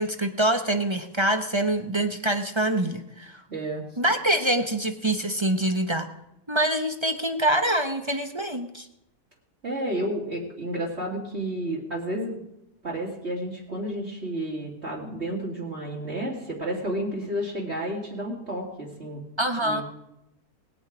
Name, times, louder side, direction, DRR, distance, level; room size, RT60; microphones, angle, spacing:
voice 1, 0.0-3.4 4.0-6.1 6.5-8.9 19.4-19.8, right 1 dB, 25° right, 6 dB, 0.7 m, -25 dB
voice 2, 3.5-3.8 9.6-12.4 12.8-19.2 19.6-19.8, right 1 dB, 45° right, -6 dB, 2.9 m, -31 dB
20.0 x 9.1 x 4.9 m, 0.86 s
omnidirectional pair, 1.6 m